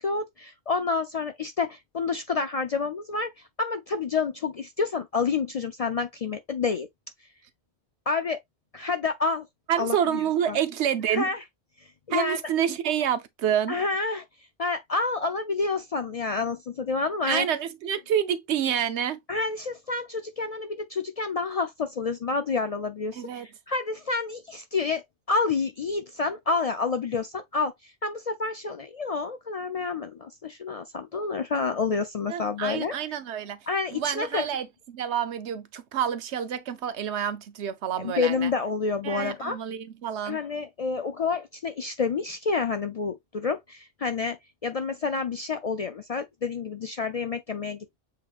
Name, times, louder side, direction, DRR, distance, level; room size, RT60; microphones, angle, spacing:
voice 1, 0.0-3.3 3.6-6.9 8.1-8.4 8.7-9.5 9.8-10.2 10.5-10.6 11.1-11.4 12.1-12.4 13.7-14.2 14.6-17.5 19.3-32.9 33.7-34.5 38.0-39.6 40.2-48.0, left 4 dB, 55° left, 0.4 m, -29 dB
voice 2, 9.7-11.3 12.1-13.8 17.3-19.2 23.1-23.5 32.3-33.6 33.9-38.5 39.0-40.4, right 9 dB, 85° right, 1.0 m, -28 dB
7.3 x 2.9 x 2.4 m
omnidirectional pair, 1.1 m